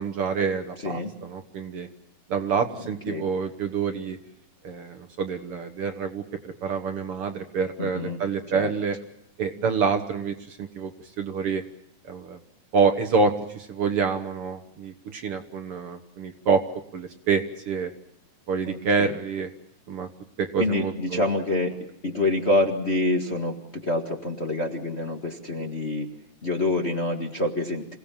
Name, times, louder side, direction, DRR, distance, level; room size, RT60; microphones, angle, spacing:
voice 1, 0.0-1.9 2.3-4.2 4.6-9.0 9.4-10.9 11.2-11.6 12.0-12.4 12.7-16.6 16.9-17.9 18.5-19.5 19.9-20.1 20.4-21.2, right 5 dB, 55° right, 7 dB, 1.9 m, -27 dB
voice 2, 7.8-8.2 8.5-8.7 18.6-19.2 20.6-21.7 22.0-26.1 26.4-28.0, left 2 dB, 30° left, 1 dB, 1.5 m, -26 dB
27.5 x 17.5 x 7.3 m, 0.84 s
omnidirectional pair, 3.4 m